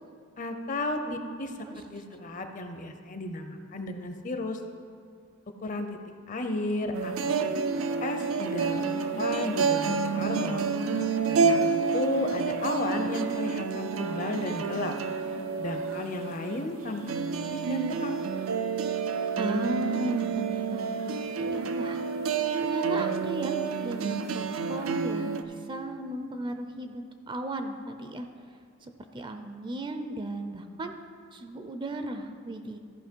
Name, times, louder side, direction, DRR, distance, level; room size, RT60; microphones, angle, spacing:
voice 1, 0.4-4.6 5.6-6.0 6.3-7.3 7.7-10.7 11.3-14.9 15.5-17.0 17.3-18.2, left 2 dB, 40° left, 7 dB, 0.7 m, -33 dB
voice 2, 1.1-1.8 19.4-22.0 22.3-28.3 29.1-30.9 31.3-32.8, right 1 dB, 25° right, 7 dB, 0.4 m, -36 dB
sound 1, 6.9-25.4, right 5 dB, 85° right, 0.5 m, -29 dB
14.0 x 5.4 x 4.5 m, 2.2 s
head